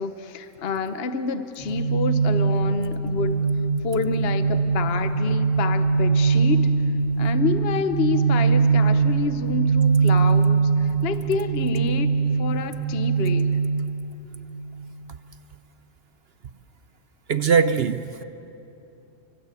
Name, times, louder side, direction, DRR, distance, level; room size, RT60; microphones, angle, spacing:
voice 1, 0.0-3.4 3.8-6.7 7.2-13.5, left 5 dB, 55° left, 1.1 m, -28 dB
sound 1, 1.6-14.6, right 5 dB, 80° left, 3.3 m, -22 dB
voice 2, 17.3-18.2, right 6 dB, 55° right, 0.9 m, -21 dB
29.0 x 25.0 x 8.3 m
omnidirectional pair, 1.3 m